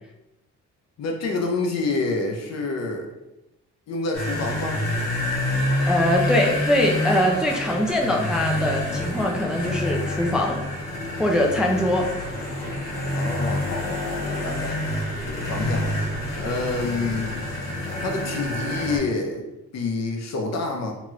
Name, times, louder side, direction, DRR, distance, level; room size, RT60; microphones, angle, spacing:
voice 1, 1.0-3.1 3.9-4.8 13.1-14.8 15.2-16.0 16.4-17.4 18.0-19.5 19.7-20.9, left 3 dB, 60° left, 2 dB, 0.7 m, -28 dB
sound 1, 4.1-19.0, left 1 dB, 85° left, 1.1 m, -27 dB
voice 2, 5.9-10.6 11.2-12.1, left 1 dB, 5° right, 0 dB, 0.3 m, -22 dB
2.9 x 2.4 x 3.1 m, 0.93 s
cardioid pair, 90°, 30 cm